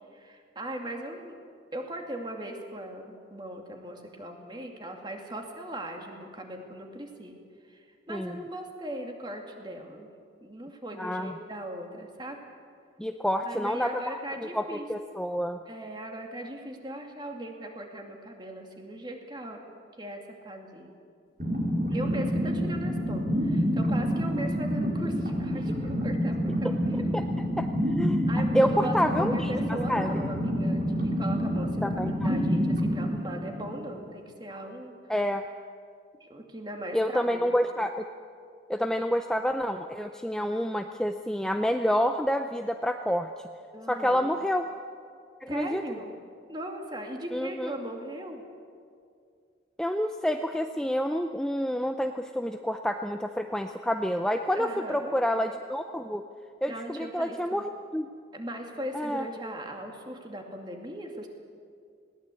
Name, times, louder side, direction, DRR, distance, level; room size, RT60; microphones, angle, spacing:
voice 1, 0.1-1.3 1.7-7.4 7.7-10.1 10.4-12.4 13.4-14.9 15.7-19.6 20.0-20.9 21.9-26.9 28.3-35.0 36.2-37.5 43.7-44.3 45.5-46.1 46.5-48.4 54.5-55.2 56.7-57.7 58.3-61.3, right 1 dB, 25° right, 2 dB, 2.4 m, -39 dB
voice 2, 8.1-8.4 11.0-11.3 13.0-15.6 26.6-28.3 28.5-30.2 31.8-32.4 35.1-35.4 36.9-38.1 38.7-43.3 43.9-44.7 45.4-45.8 47.3-47.7 49.8-56.2 56.6-58.1 58.9-59.3, equal, 5° left, 5 dB, 0.5 m, -28 dB
sound 1, 21.4-34.1, equal, 45° right, 4.3 m, -28 dB
21.0 x 18.0 x 8.5 m, 2.3 s
head